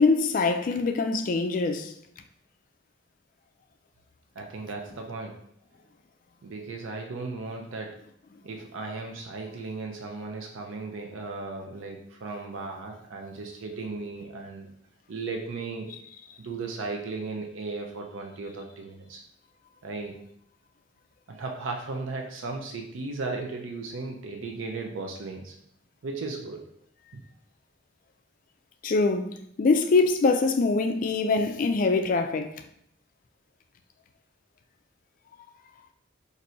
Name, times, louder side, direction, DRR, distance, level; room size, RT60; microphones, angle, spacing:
voice 1, 0.0-1.9 28.8-32.6, left 3 dB, 45° left, 0.3 m, -24 dB
voice 2, 4.4-5.4 6.4-8.1 8.4-14.7 15.1-15.9 16.4-19.2 19.8-20.2 21.3-25.5 26.0-26.6 27.1-27.2, right 3 dB, 75° right, 0.5 m, -36 dB
4.3 x 2.6 x 2.6 m
head